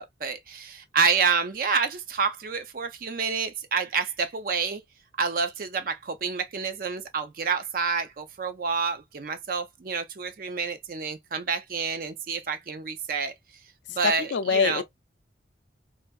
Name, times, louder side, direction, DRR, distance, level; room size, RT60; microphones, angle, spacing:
voice 1, 0.0-4.8 5.2-13.3 13.9-14.8, right 5 dB, 50° right, 0.4 m, -28 dB
voice 2, 14.0-14.8, left 5 dB, 80° left, 0.4 m, -24 dB
3.3 x 2.6 x 2.3 m
head